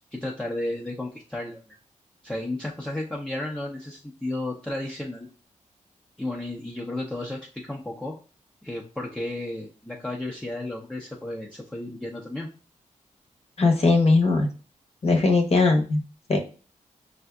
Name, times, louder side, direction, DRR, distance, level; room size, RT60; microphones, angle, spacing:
voice 1, 0.1-1.6 2.2-5.3 6.2-8.1 8.6-12.5, left 1 dB, 5° left, -4 dB, 0.7 m, -33 dB
voice 2, 13.6-14.5 15.0-16.0 16.3-16.4, left 3 dB, 50° left, 2 dB, 0.9 m, -19 dB
5.4 x 2.6 x 2.3 m, 0.37 s
cardioid pair, 60°, 14 cm